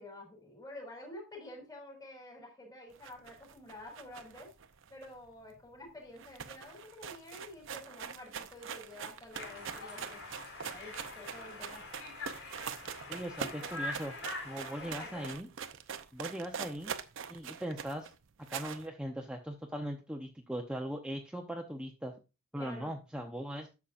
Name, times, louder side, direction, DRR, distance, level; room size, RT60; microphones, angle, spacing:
voice 1, 0.0-4.5 4.9-10.2 10.6-11.8 13.6-13.9 14.8-15.3 22.6-22.9, left 1 dB, 20° left, -1 dB, 3.4 m, -49 dB
sound 1, 2.9-5.6 5.9-6.0 6.2-18.9, right 7 dB, 65° right, 0.7 m, -43 dB
Conversation, 9.3-15.3, left 2 dB, 80° left, 3.5 m, -44 dB
voice 2, 13.1-14.1 14.4-15.5 16.1-16.9 17.3-18.1 18.5-22.1 22.5-23.7, equal, 5° right, 1 dB, 0.8 m, -39 dB
11.0 x 7.2 x 2.5 m, 0.29 s
head